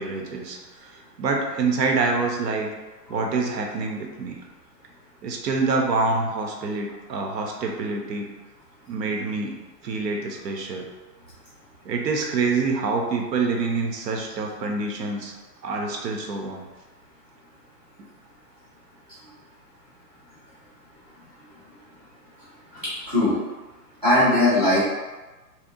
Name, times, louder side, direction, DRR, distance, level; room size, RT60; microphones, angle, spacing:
voice 1, 0.0-2.7 3.1-4.4 5.2-8.3 8.9-9.5 9.8-10.9 11.8-15.3 15.6-16.6, right 4 dB, 75° right, 2 dB, 0.7 m, -26 dB
voice 2, 22.7-23.4 24.0-24.8, left 1 dB, 25° right, -12 dB, 0.5 m, -20 dB
2.7 x 2.0 x 2.5 m, 1.2 s
hypercardioid pair, 175°, 50 cm